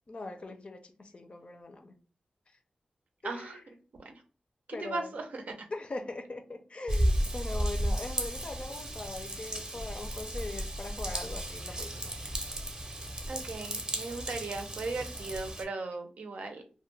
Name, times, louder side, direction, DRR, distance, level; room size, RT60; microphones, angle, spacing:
voice 1, 0.1-2.0 3.2-3.6 4.7-5.2 5.7-12.2, left 2 dB, 45° left, 0.5 m, -41 dB
voice 2, 3.2-3.6 4.0-4.2 4.8-5.4 13.3-16.6, right 3 dB, 75° right, 0.5 m, -37 dB
Raindrop / Vehicle horn car horn honking / Trickle dribble, 6.9-15.6, right 1 dB, 30° right, 0.6 m, -34 dB
2.3 x 2.1 x 3.1 m
cardioid pair, 70°, 3 cm